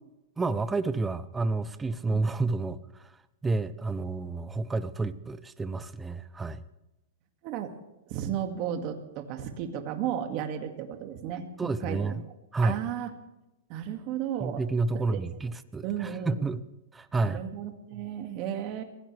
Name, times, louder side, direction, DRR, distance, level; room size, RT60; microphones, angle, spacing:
voice 1, 0.4-3.1 3.4-6.6 11.6-12.2 12.5-12.8 14.4-16.6 16.9-17.4, right 3 dB, 10° right, 14 dB, 0.7 m, -30 dB
voice 2, 8.1-11.5 11.8-12.1 12.6-13.1 13.7-14.6 14.9-15.2 15.8-16.3 17.1-18.8, right 9 dB, 40° right, 5 dB, 2.1 m, -34 dB
23.0 x 16.0 x 3.4 m, 0.95 s
hypercardioid pair, 140°, 0 cm